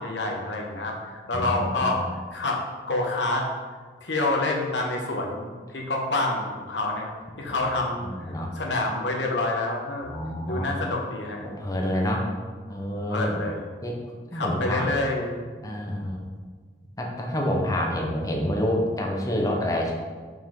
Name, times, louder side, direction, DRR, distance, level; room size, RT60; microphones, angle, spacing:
voice 1, 0.0-2.0 2.3-2.6 2.9-3.5 4.0-7.1 7.4-10.1 10.5-11.5 11.8-12.3 13.1-13.6 14.3-15.5, left 2 dB, 75° left, 0 dB, 1.3 m, -28 dB
voice 2, 1.3-2.0 8.0-8.5 10.1-10.7 11.4-12.3 12.7-13.4 13.8-14.0 14.3-15.0 15.6-16.2 17.0-19.9, left 1 dB, 20° left, 0 dB, 1.0 m, -28 dB
7.4 x 5.6 x 3.8 m, 1.5 s
head